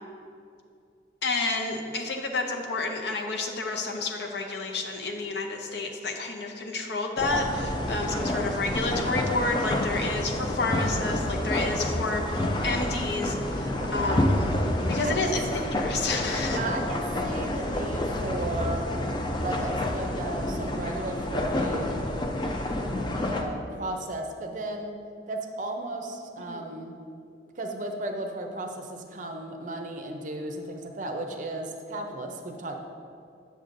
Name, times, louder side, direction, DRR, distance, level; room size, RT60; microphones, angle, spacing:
voice 1, 1.2-14.5 14.8-16.6 26.5-26.6, left 3 dB, 65° left, 3 dB, 0.6 m, -30 dB
sound 1, 7.2-23.4, left 1 dB, 25° left, 0.4 m, -28 dB
voice 2, 13.5-13.9 15.0-15.3 16.5-18.9 19.4-21.9 23.3-25.0 25.3-26.9 27.6-32.8, right 2 dB, 45° right, 4 dB, 0.5 m, -35 dB
7.9 x 6.5 x 2.6 m, 2.4 s
head